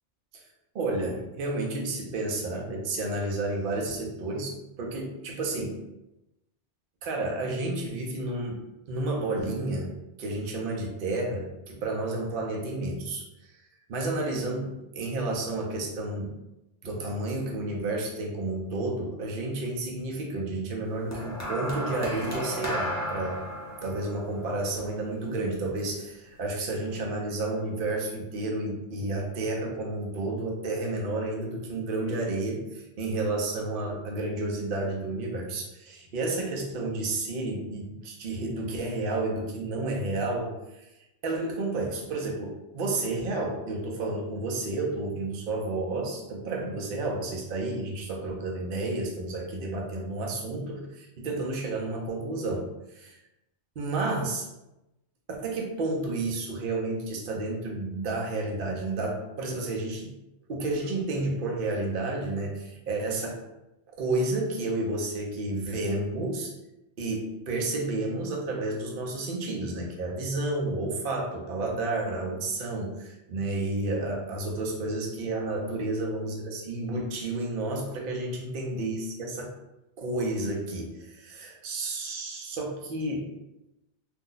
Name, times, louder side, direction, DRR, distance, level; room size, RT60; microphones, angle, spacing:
voice 1, 0.7-5.8 7.0-8.6 8.9-9.9 10.2-13.2 13.9-16.4 16.8-23.4 23.8-40.9 41.2-53.2 53.8-54.5 55.4-60.1 60.5-63.4 64.0-66.5 67.0-79.5 80.0-83.3, right 2 dB, 55° right, 0 dB, 0.7 m, -31 dB
sound 1, 21.1-25.5 26.5-26.7, equal, 25° left, 0.4 m, -34 dB
2.6 x 2.1 x 3.7 m, 0.92 s
omnidirectional pair, 1.2 m